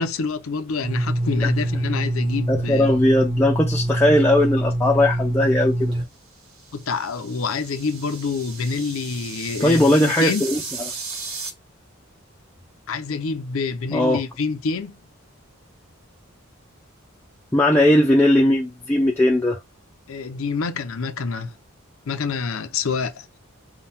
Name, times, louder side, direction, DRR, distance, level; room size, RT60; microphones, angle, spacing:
voice 1, 0.0-2.9 6.7-10.4 12.9-15.0 20.1-21.6 22.1-23.3, left 4 dB, 70° left, 0.6 m, -27 dB
sound 1, 0.8-6.0, right 1 dB, 25° right, 0.9 m, -24 dB
voice 2, 2.5-5.9 9.6-10.6 13.9-14.2 17.5-19.6, left 1 dB, 10° left, 0.5 m, -18 dB
sound 2, 6.4-11.5, right 4 dB, 85° right, 1.3 m, -36 dB
3.7 x 2.2 x 4.1 m
head